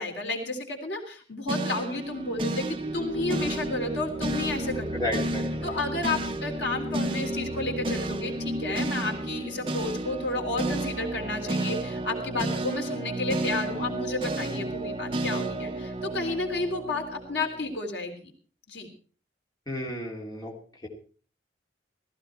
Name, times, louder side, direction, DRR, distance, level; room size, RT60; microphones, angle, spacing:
voice 1, 0.0-4.9 5.6-18.3 18.7-18.9, left 2 dB, 75° left, 2 dB, 3.2 m, -31 dB
sound 1, 1.5-17.8, right 2 dB, 30° right, 1.0 m, -32 dB
voice 2, 4.9-5.7 19.7-20.5 20.8-20.9, left 1 dB, 20° left, -2 dB, 2.7 m, -32 dB
15.5 x 14.5 x 4.4 m, 0.41 s
head